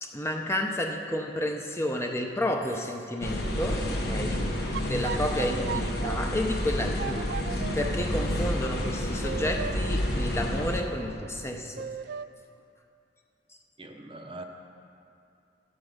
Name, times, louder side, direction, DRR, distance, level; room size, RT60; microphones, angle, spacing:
voice 1, 0.0-11.9, left 1 dB, 15° left, 3 dB, 0.6 m, -31 dB
sound 1, 3.2-10.8, left 1 dB, 60° left, 1.1 m, -29 dB
sound 2, 4.7-6.2 7.0-7.9 9.2-9.7 11.8-12.3, right 7 dB, 60° right, 0.3 m, -36 dB
voice 2, 13.8-14.4, right 2 dB, 30° right, 4 dB, 0.7 m, -42 dB
12.0 x 8.1 x 5.2 m, 2.5 s
head